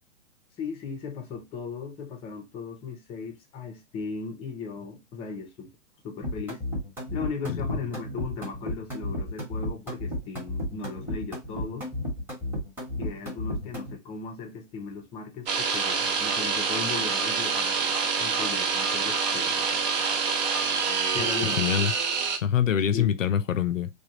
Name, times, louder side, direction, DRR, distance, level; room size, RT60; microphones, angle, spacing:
voice 1, 0.6-5.7 6.0-6.6 7.1-11.9 13.0-17.8 18.2-19.7 21.1-21.6 22.9-23.1, left 5 dB, 15° left, 0.6 m, -37 dB
sound 1, 6.2-14.0, left 1 dB, 5° right, 1.1 m, -33 dB
sound 2, 15.5-22.4, right 5 dB, 35° right, 0.6 m, -26 dB
voice 2, 21.4-21.9 22.4-23.9, left 9 dB, 85° left, 0.6 m, -25 dB
3.3 x 2.3 x 2.8 m
hypercardioid pair, 130°, 38 cm